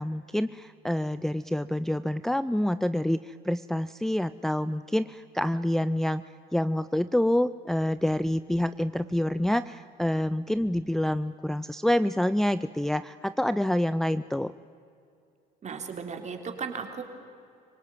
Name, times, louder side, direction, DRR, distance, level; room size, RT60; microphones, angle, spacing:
voice 1, 0.0-6.2 6.5-14.5, left 1 dB, ahead, 13 dB, 0.5 m, -27 dB
voice 2, 15.6-17.0, right 6 dB, 40° right, 5 dB, 3.5 m, -36 dB
25.5 x 18.0 x 9.1 m, 2.5 s
supercardioid pair, 95°, 18 cm